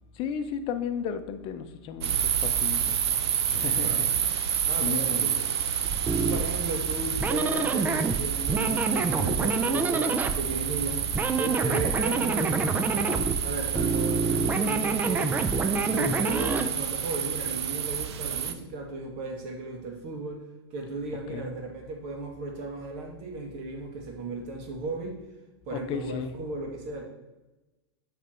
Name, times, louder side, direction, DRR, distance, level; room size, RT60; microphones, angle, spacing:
voice 1, 0.1-3.0 3.5-4.1 4.8-5.4 15.9-16.1 21.3-21.5 25.7-26.4, left 7 dB, 40° left, 9 dB, 0.7 m, -34 dB
sound 1, 2.0-18.5, right 9 dB, 85° right, 0.5 m, -29 dB
voice 2, 4.7-5.5 6.1-11.0 11.3-20.4 20.7-25.2 25.7-27.1, right 2 dB, 50° right, 2 dB, 1.7 m, -35 dB
sound 2, 5.8-16.7, right 3 dB, 10° right, 0.4 m, -28 dB
7.3 x 3.4 x 4.4 m, 1.0 s
hypercardioid pair, 115°, 14 cm